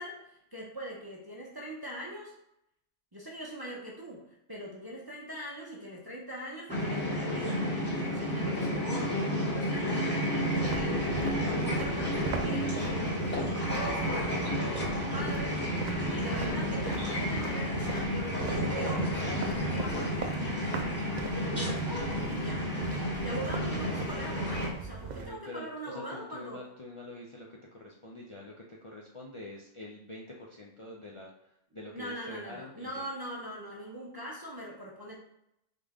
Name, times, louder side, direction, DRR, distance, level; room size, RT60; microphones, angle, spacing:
voice 1, 0.0-2.3 3.1-7.7 8.0-15.6 16.1-20.3 20.7-22.7 23.2-26.6 31.9-35.2, right 1 dB, 20° right, -4 dB, 0.7 m, -42 dB
sound 1, 6.7-24.7, equal, 10° left, 1.1 m, -31 dB
sound 2, 10.5-25.3, right 5 dB, 60° right, 0.4 m, -41 dB
voice 2, 25.1-31.3 31.7-33.0, left 2 dB, 50° left, -3 dB, 0.3 m, -45 dB
3.7 x 3.4 x 3.6 m, 0.79 s
omnidirectional pair, 1.3 m